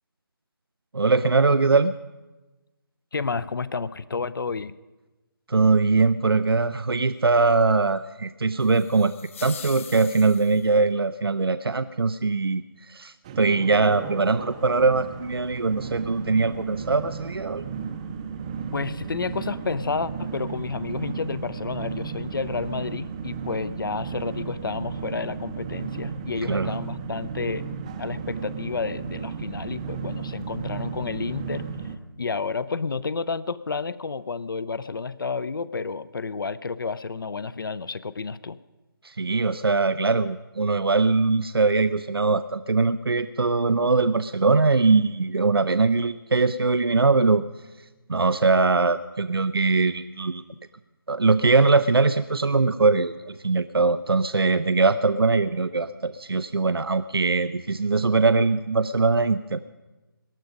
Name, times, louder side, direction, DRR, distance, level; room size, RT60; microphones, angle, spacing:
voice 1, 0.9-1.9 5.5-9.1 9.4-12.6 12.9-17.6 26.5-26.7 39.0-47.4 48.1-50.4 51.1-59.6, right 3 dB, 90° right, 13 dB, 0.5 m, -21 dB
voice 2, 3.1-4.7 18.7-27.7 28.0-38.6, left 4 dB, 65° left, 17 dB, 0.6 m, -30 dB
sound 1, 8.6-10.8, left 7 dB, 35° left, 1.0 m, -42 dB
sound 2, 13.2-32.0, right 6 dB, 15° right, 0.6 m, -34 dB
18.0 x 11.5 x 5.2 m, 1.1 s
figure-of-eight pair, 155°, 12 cm